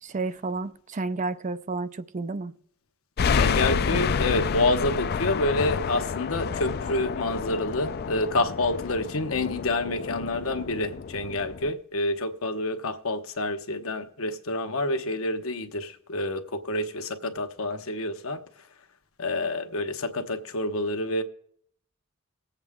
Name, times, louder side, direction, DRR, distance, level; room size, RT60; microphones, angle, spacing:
voice 1, 0.0-2.5 3.9-4.0, right 3 dB, 35° right, 0.5 m, -31 dB
sound 1, 3.2-11.7, left 6 dB, 50° left, 0.4 m, -29 dB
voice 2, 3.3-18.4 19.2-21.2, left 2 dB, 80° left, 1.0 m, -28 dB
20.5 x 8.0 x 3.6 m
head